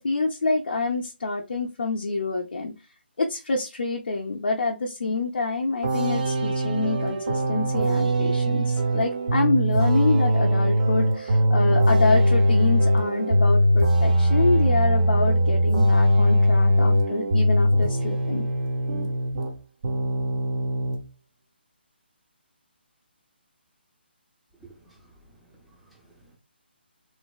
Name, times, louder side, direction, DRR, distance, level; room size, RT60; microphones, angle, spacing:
voice 1, 0.0-2.7 3.2-18.5, left 3 dB, 65° left, 0.6 m, -27 dB
sound 1, 5.8-19.6 19.8-21.0, equal, 45° right, 0.7 m, -21 dB
voice 2, 24.6-26.4, right 2 dB, ahead, 0.6 m, -54 dB
3.2 x 2.1 x 2.3 m
figure-of-eight pair, 145°, 6 cm